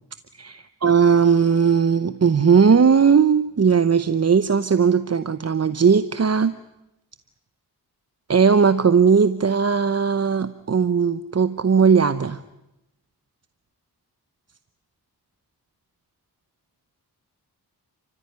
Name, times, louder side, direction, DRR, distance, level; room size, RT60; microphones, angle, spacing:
voice 1, 0.4-6.6 8.3-12.4, right 6 dB, 40° right, 13 dB, 0.8 m, -18 dB
30.0 x 14.5 x 9.5 m, 0.92 s
cardioid pair, 70°, 39 cm